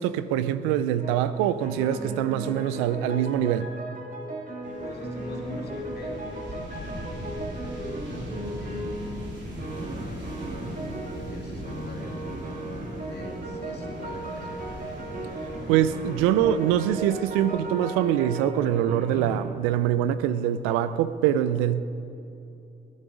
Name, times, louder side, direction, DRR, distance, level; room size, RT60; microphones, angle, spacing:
voice 1, 0.0-3.7 15.7-21.8, right 10 dB, 85° right, 0.6 m, -24 dB
sound 1, 1.0-1.3 1.6-9.2 9.6-11.3 11.6-19.6 20.6-20.8, right 1 dB, 40° right, 2.6 m, -36 dB
sound 2, 4.6-17.6, right 1 dB, 60° right, 3.8 m, -39 dB
voice 2, 4.8-7.4 8.6-10.8 11.2-12.2 13.0-14.5, left 2 dB, 50° left, 3.2 m, -43 dB
22.0 x 11.5 x 5.0 m
hypercardioid pair, 40°, 21 cm